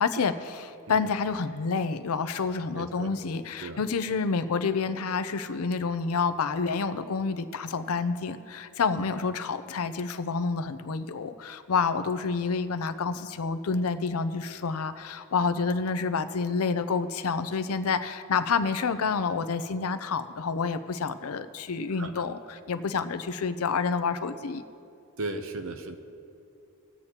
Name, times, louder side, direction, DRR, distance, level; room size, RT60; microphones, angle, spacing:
voice 1, 0.0-24.6, left 5 dB, 75° left, 11 dB, 0.5 m, -28 dB
voice 2, 2.7-3.1 3.6-3.8 22.0-22.2 25.2-26.0, right 2 dB, 60° right, 7 dB, 0.7 m, -36 dB
20.5 x 8.0 x 2.9 m, 2.7 s
head